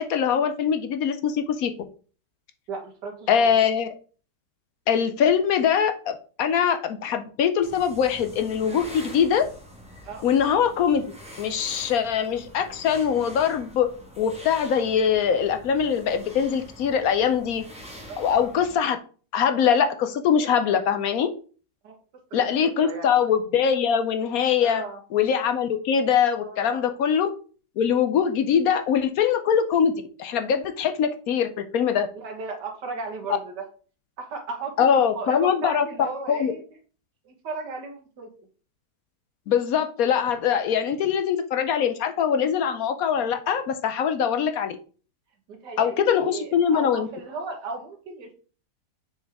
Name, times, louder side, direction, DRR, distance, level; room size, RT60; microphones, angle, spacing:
voice 1, 0.0-1.7 3.3-3.9 4.9-9.5 10.2-11.0 11.4-13.9 14.2-17.6 18.2-19.0 19.3-21.3 22.3-24.8 25.1-27.3 27.8-29.9 30.2-32.1 34.8-35.9 36.3-36.5 39.5-44.8 45.8-47.1, left 7 dB, 70° left, 8 dB, 1.0 m, -22 dB
voice 2, 2.7-3.6 10.0-10.2 18.1-18.3 21.8-22.0 22.3-23.1 24.6-25.0 26.4-26.9 32.2-33.7 34.2-36.6 37.2-38.3 45.5-48.3, right 4 dB, 85° right, 2 dB, 2.0 m, -35 dB
sound 1, 7.6-18.8, equal, 5° right, 1.4 m, -45 dB
6.6 x 4.6 x 3.5 m, 0.38 s
omnidirectional pair, 1.8 m